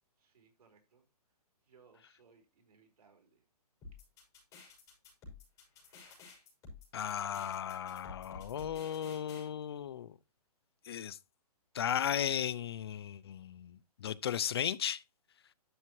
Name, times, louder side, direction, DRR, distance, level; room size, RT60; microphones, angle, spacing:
voice 1, 0.2-1.0 1.6-3.4, right 5 dB, 75° right, 4.7 m, -65 dB
sound 1, 3.8-9.5, left 3 dB, 15° left, 6.1 m, -52 dB
voice 2, 6.9-10.1 10.8-11.2 11.7-15.0, left 9 dB, 40° left, 0.4 m, -35 dB
12.0 x 6.8 x 3.1 m
hypercardioid pair, 165°, 20 cm